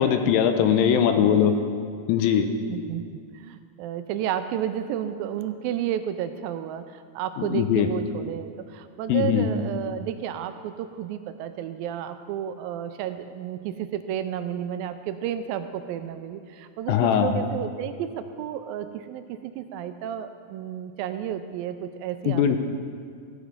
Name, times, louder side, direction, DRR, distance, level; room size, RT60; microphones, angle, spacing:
voice 1, 0.0-1.5 2.1-2.5 7.4-7.9 9.1-9.5 16.9-17.4 22.3-22.6, left 9 dB, 85° left, 7 dB, 2.3 m, -20 dB
voice 2, 1.1-1.5 2.3-22.6, right 10 dB, 80° right, 10 dB, 2.3 m, -32 dB
15.0 x 7.9 x 5.4 m, 2.1 s
omnidirectional pair, 4.2 m